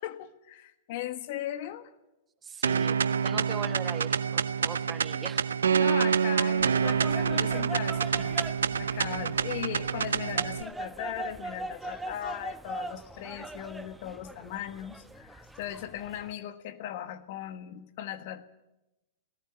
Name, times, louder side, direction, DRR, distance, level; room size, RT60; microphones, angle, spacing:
voice 1, 0.0-1.9 3.3-3.5 5.7-8.4 8.7-18.4, left 12 dB, 60° left, 11 dB, 1.4 m, -38 dB
voice 2, 2.4-3.0 3.2-5.5, right 6 dB, 20° right, 11 dB, 1.2 m, -40 dB
sound 1, 2.6-10.6, right 7 dB, 85° right, 0.7 m, -27 dB
sound 2, 6.6-16.3, right 2 dB, 5° right, 1.0 m, -42 dB
18.5 x 14.5 x 9.8 m, 0.97 s
hypercardioid pair, 105°, 0 cm